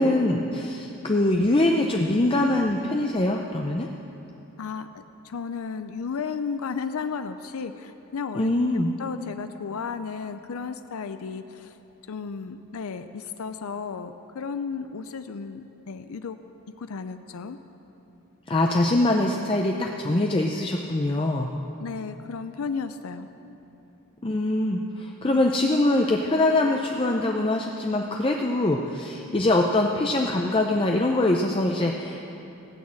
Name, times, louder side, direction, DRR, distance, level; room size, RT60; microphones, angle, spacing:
voice 1, 0.0-3.9 8.4-8.9 18.5-21.5 24.2-32.2, left 2 dB, 25° left, 1 dB, 0.5 m, -23 dB
voice 2, 4.6-11.8 12.1-16.4 16.8-17.6 21.8-23.3, left 5 dB, 70° left, 9 dB, 0.5 m, -34 dB
17.5 x 6.4 x 8.7 m, 3.0 s
head